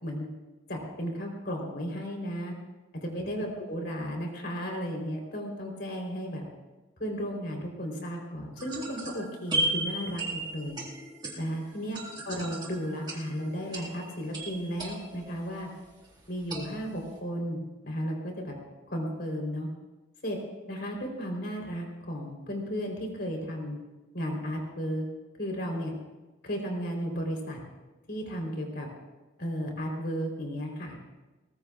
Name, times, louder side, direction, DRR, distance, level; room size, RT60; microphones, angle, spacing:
voice 1, 0.7-2.5 3.0-6.4 7.0-10.8 11.4-12.0 12.2-15.7 16.3-18.6 18.9-19.7 20.2-20.4 20.7-23.8 24.1-25.1 25.4-25.9 26.4-27.6 28.1-28.9 29.4-31.0, equal, 55° left, 1 dB, 3.6 m, -34 dB
sound 1, 8.6-15.8 16.5-17.2, right 1 dB, 20° right, 1.9 m, -36 dB
21.5 x 19.5 x 2.4 m, 1.2 s
head